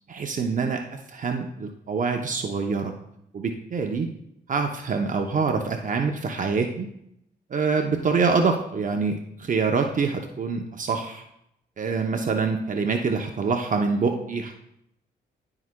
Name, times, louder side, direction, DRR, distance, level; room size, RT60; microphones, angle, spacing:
voice 1, 0.1-2.9 3.3-4.1 4.5-6.9 7.5-11.2 11.8-14.5, right 4 dB, 45° right, 3 dB, 0.7 m, -25 dB
13.5 x 4.9 x 2.2 m, 0.78 s
cardioid pair, 75°, 18 cm